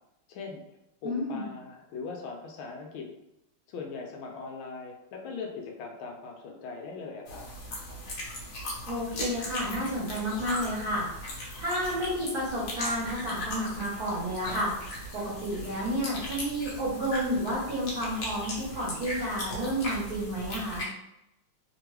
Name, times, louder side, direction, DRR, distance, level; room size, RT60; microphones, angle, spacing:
voice 1, 0.3-0.6 1.0-3.1 3.7-7.5, left 4 dB, 75° left, 1 dB, 1.3 m, -40 dB
voice 2, 1.0-1.4 8.9-11.1 11.6-14.7 15.1-20.9, equal, 55° right, -6 dB, 1.1 m, -31 dB
sound 1, 7.3-20.8, left 1 dB, 55° left, 1.2 m, -38 dB
3.6 x 2.2 x 3.0 m, 0.86 s
omnidirectional pair, 2.4 m